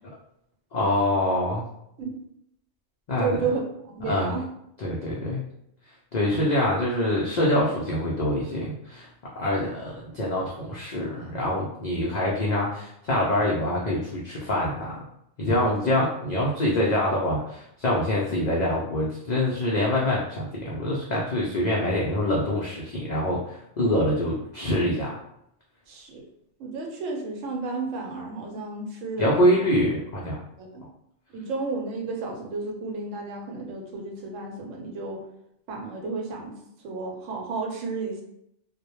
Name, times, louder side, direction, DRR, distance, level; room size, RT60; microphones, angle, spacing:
voice 1, 0.7-1.6 3.1-3.4 4.1-4.3 4.8-5.4 6.1-9.1 9.3-14.9 15.4-25.1 29.2-30.4, left 1 dB, 85° left, -4 dB, 0.3 m, -25 dB
voice 2, 3.2-3.6 4.0-4.5 15.6-15.9 25.9-26.3 26.6-29.6 30.6-30.8 31.3-35.2 35.7-36.6 36.8-38.2, right 4 dB, 90° right, 1 dB, 1.0 m, -32 dB
2.1 x 2.1 x 2.9 m, 0.77 s
omnidirectional pair, 1.3 m